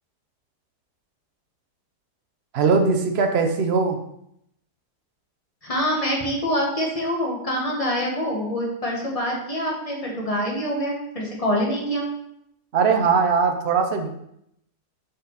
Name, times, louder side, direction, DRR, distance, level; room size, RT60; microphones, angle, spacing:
voice 1, 2.5-4.0 12.7-14.1, right 5 dB, 50° right, 5 dB, 0.9 m, -20 dB
voice 2, 5.6-12.1, equal, 20° left, -2 dB, 1.6 m, -25 dB
6.9 x 6.0 x 4.1 m, 0.77 s
omnidirectional pair, 1.7 m